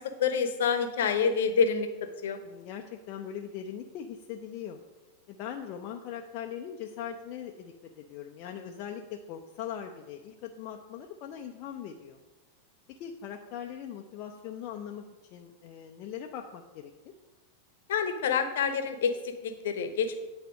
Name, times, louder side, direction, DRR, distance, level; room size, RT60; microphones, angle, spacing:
voice 1, 0.0-1.9 2.2-2.4 17.9-20.2, left 6 dB, 60° left, 8 dB, 0.9 m, -27 dB
voice 2, 2.4-4.8 5.3-12.2 13.0-15.0 15.3-16.9, left 9 dB, 40° left, 3 dB, 0.5 m, -40 dB
9.2 x 4.3 x 6.3 m, 1.2 s
figure-of-eight pair, 90°, 0 cm